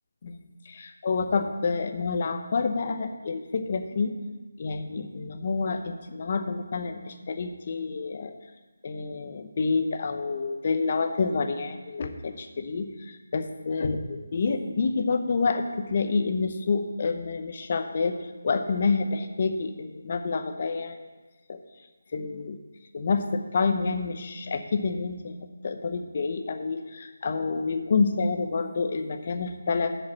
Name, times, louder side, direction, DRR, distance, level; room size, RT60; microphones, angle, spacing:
voice 1, 0.7-4.2 4.6-8.3 8.8-21.1 21.5-21.6 22.1-22.6 22.9-25.4 25.6-30.0, left 4 dB, 35° left, 7 dB, 0.7 m, -28 dB
7.7 x 6.4 x 7.4 m, 1.2 s
figure-of-eight pair, 170°, 0 cm